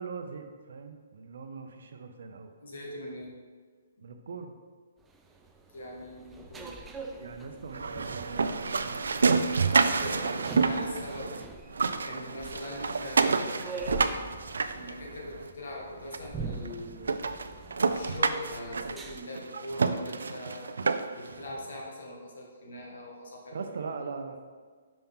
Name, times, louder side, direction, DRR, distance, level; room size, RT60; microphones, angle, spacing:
voice 1, 0.0-2.5 4.0-4.5 7.2-9.0 23.5-24.4, right 5 dB, 70° right, 6 dB, 0.7 m, -40 dB
voice 2, 2.6-3.3 5.7-6.7 9.9-11.3 12.0-13.9 14.7-17.1 17.9-20.7 21.1-23.6, left 1 dB, 70° left, -2 dB, 1.8 m, -41 dB
sound 1, 5.0-19.2, right 3 dB, 10° right, 0.4 m, -44 dB
sound 2, 7.7-11.4 11.7-15.5 16.1-16.2 16.7-16.8 17.1-21.3, right 4 dB, 85° right, 0.4 m, -28 dB
5.8 x 5.2 x 3.7 m, 1.5 s
hypercardioid pair, 155°, 0 cm